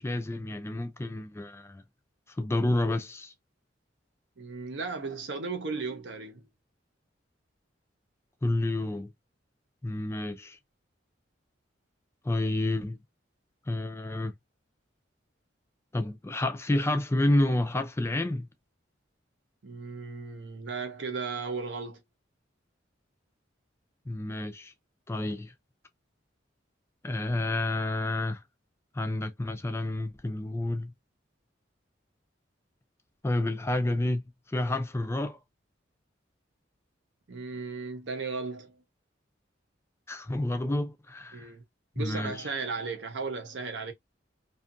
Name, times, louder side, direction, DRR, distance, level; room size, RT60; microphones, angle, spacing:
voice 1, 0.0-1.8 2.3-3.3 8.4-9.1 9.8-10.6 12.2-13.0 13.7-14.3 15.9-18.5 24.1-24.7 25.1-25.5 27.0-28.4 28.9-30.9 33.2-34.2 34.5-35.4 40.1-41.5 42.0-42.5, left 1 dB, 15° left, 0.3 m, -29 dB
voice 2, 4.4-6.4 19.6-22.0 37.3-38.8 41.3-41.6 42.0-43.9, right 4 dB, 70° right, 0.7 m, -35 dB
2.6 x 2.4 x 2.5 m
head